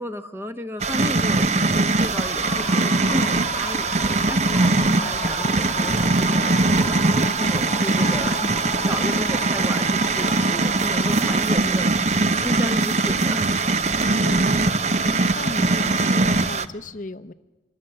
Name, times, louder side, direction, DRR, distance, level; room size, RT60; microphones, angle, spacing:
voice 1, 0.0-8.6 8.8-12.2 12.4-13.5, equal, 15° right, 9 dB, 1.1 m, -33 dB
sound 1, 0.8-16.6, right 3 dB, 40° right, 0.8 m, -21 dB
sound 2, 2.1-11.4, left 3 dB, 15° left, 0.9 m, -36 dB
voice 2, 4.8-5.1 14.0-17.3, left 2 dB, 45° left, 9 dB, 0.7 m, -36 dB
25.5 x 25.0 x 7.7 m, 1.2 s
head